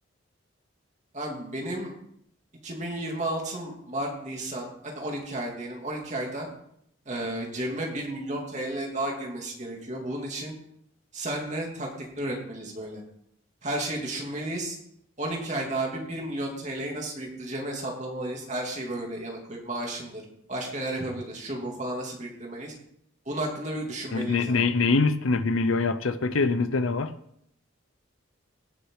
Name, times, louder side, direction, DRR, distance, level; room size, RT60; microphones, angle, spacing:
voice 1, 1.1-1.9 2.6-6.5 7.1-10.5 11.1-11.9 12.2-13.0 13.6-14.8 15.2-20.2 20.5-22.7 23.3-24.6, right 1 dB, 35° right, 2.8 m, -33 dB
voice 2, 24.1-27.1, left 3 dB, 85° left, 0.7 m, -24 dB
17.5 x 6.5 x 4.8 m
head